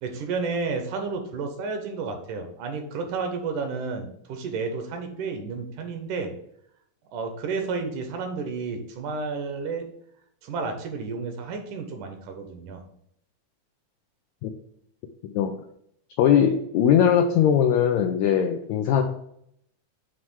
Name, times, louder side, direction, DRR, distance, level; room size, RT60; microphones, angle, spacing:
voice 1, 0.0-6.3 7.1-9.9 10.4-12.8, right 4 dB, 75° right, 5 dB, 2.2 m, -31 dB
voice 2, 16.2-19.0, left 8 dB, 85° left, 5 dB, 1.6 m, -20 dB
7.4 x 3.1 x 4.6 m, 0.72 s
omnidirectional pair, 3.8 m